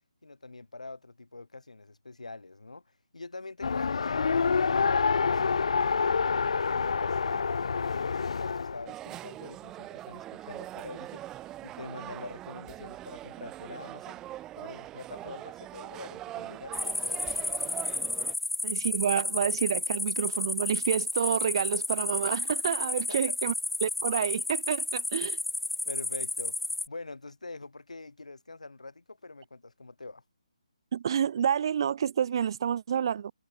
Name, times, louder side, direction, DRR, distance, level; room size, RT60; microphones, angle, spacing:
voice 1, 0.2-2.8 3.1-5.9 6.2-14.2 14.6-17.7 22.9-23.4 25.9-26.6 26.9-30.2, left 3 dB, 80° left, 2.4 m, -45 dB
Race car auto racing, 3.6-8.9, left 5 dB, 60° left, 0.5 m, -27 dB
sound 1, 8.9-18.3, right 14 dB, 15° right, 1.0 m, -42 dB
sound 2, 16.7-26.9, left 2 dB, ahead, 0.4 m, -32 dB
voice 2, 18.6-23.5 23.8-25.4 30.9-33.3, right 8 dB, 45° right, 0.9 m, -29 dB
figure-of-eight pair, 145°, 4 cm